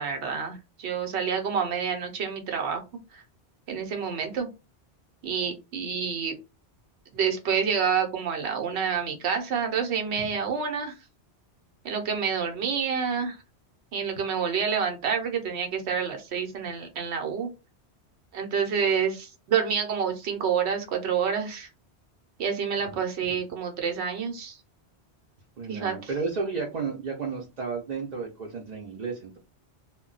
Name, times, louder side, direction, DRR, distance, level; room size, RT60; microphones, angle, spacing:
voice 1, 0.0-2.8 3.1-3.2 3.7-4.5 5.2-6.3 7.1-10.9 11.8-13.4 13.9-17.5 18.3-21.7 22.4-24.6 25.7-25.9, right 6 dB, 80° right, 4 dB, 1.0 m, -28 dB
voice 2, 25.6-29.4, right 4 dB, 50° right, -2 dB, 0.6 m, -33 dB
2.2 x 2.2 x 3.8 m, 0.28 s
omnidirectional pair, 1.1 m